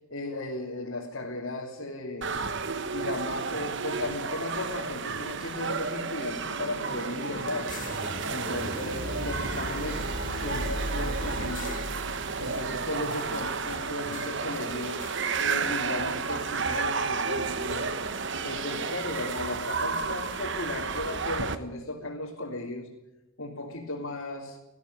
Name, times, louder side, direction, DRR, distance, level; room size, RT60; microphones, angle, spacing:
voice 1, 0.1-2.3 2.9-7.7 8.3-11.8 12.4-15.0 15.4-18.0 18.4-22.9 23.4-24.6, left 2 dB, 65° left, -3 dB, 3.3 m, -35 dB
sound 1, 2.2-21.6, right 5 dB, 55° right, 1.1 m, -32 dB
sound 2, 5.4-14.0, equal, 40° right, 3.4 m, -37 dB
sound 3, 7.7-9.8 10.2-16.6, left 9 dB, 35° left, 1.7 m, -52 dB
20.0 x 14.5 x 9.4 m, 0.98 s
head